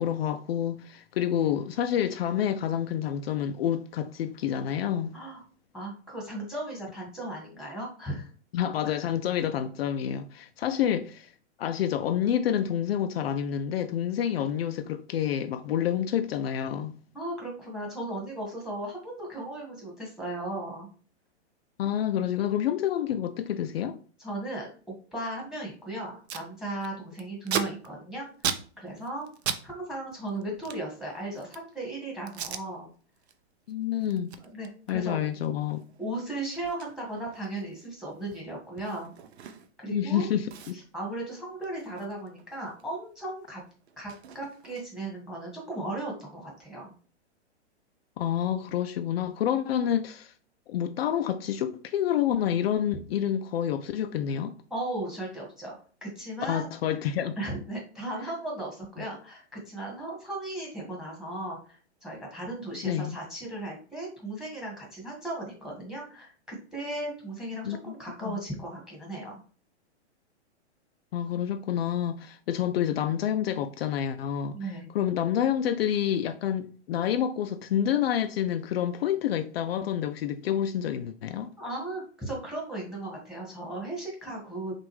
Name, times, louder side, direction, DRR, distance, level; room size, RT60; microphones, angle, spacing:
voice 1, 0.0-5.1 8.5-11.3 11.6-17.0 21.8-24.0 33.7-34.4 34.9-35.8 39.9-40.8 48.2-50.3 50.7-54.6 56.5-57.4 62.8-63.2 67.6-67.9 68.2-68.4 71.1-74.6 74.9-81.5, left 10 dB, 60° left, 0.5 m, -28 dB
voice 2, 5.7-8.3 17.1-20.9 24.2-29.3 29.6-32.9 34.4-35.2 36.0-39.1 39.8-40.3 40.7-43.6 44.0-46.9 54.7-56.7 57.4-69.4 74.5-74.9 81.6-84.7, right 1 dB, ahead, 1.5 m, -36 dB
Packing tape duct tape, 25.7-25.8 26.0-26.5 26.8-29.6 29.9-31.7 32.3-32.6 33.1-33.3 33.7-39.9 40.1-40.2 40.5-42.9 43.1-45.1, right 8 dB, 70° right, 0.7 m, -38 dB
6.0 x 2.5 x 3.2 m
hypercardioid pair, 135°, 34 cm